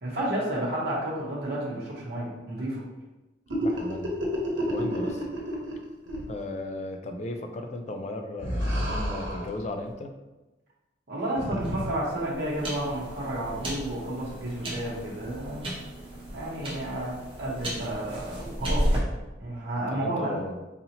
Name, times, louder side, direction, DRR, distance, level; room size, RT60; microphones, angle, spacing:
voice 1, 0.0-2.8 11.1-15.7 16.3-19.0 19.4-20.3, right 1 dB, 55° right, -6 dB, 0.9 m, -31 dB
sound 1, 3.5-5.8 6.1-6.2 8.4-9.6 11.4-11.9, equal, 90° right, 1.0 m, -30 dB
voice 2, 3.6-4.2 4.7-5.3 6.3-10.1 19.9-20.6, left 2 dB, 35° left, 5 dB, 0.3 m, -35 dB
sound 2, 11.6-19.0, equal, 30° right, 0.7 m, -33 dB
4.0 x 2.7 x 2.8 m, 1.1 s
head